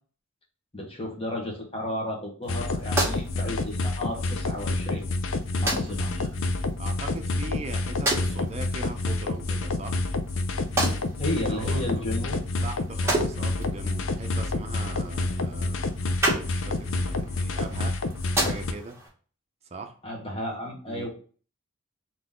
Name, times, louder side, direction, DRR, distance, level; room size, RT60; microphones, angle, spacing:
voice 1, 0.7-5.0 5.6-6.3 11.2-12.4 20.0-21.1, left 1 dB, 25° left, 0 dB, 1.2 m, -33 dB
sound 1, 2.4-19.1, right 1 dB, 15° right, 1.4 m, -34 dB
sound 2, 2.5-18.7, left 2 dB, 70° left, 0.5 m, -28 dB
voice 2, 5.5-5.9 6.8-10.0 11.4-12.0 12.6-15.8 16.2-18.0 18.4-19.0 19.7-20.0 20.9-21.1, right 3 dB, 30° right, 5 dB, 0.6 m, -40 dB
4.0 x 2.9 x 3.6 m, 0.41 s
head